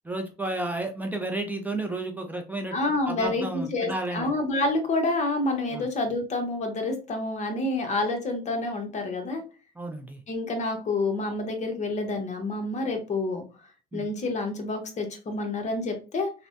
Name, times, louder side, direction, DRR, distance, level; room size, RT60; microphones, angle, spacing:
voice 1, 0.0-2.8 3.1-4.3 5.7-5.9 9.8-10.2 13.9-14.0, right 2 dB, 10° right, 3 dB, 0.4 m, -32 dB
voice 2, 2.7-9.4 10.3-13.4 13.9-16.3, left 2 dB, 45° left, 4 dB, 0.9 m, -28 dB
3.3 x 2.1 x 2.5 m, 0.34 s
cardioid pair, 110°, 17 cm